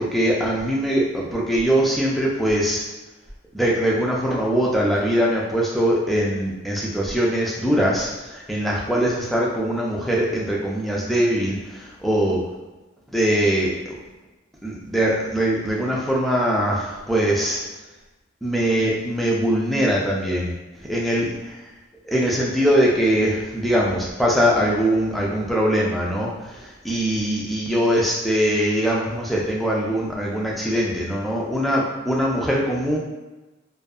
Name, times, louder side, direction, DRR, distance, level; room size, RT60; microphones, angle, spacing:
voice 1, 0.0-2.8 3.5-12.4 13.1-14.0 14.6-17.6 18.4-20.5 20.9-21.6 22.0-33.0, equal, ahead, -4 dB, 0.3 m, -22 dB
2.6 x 2.3 x 2.3 m, 1.1 s
head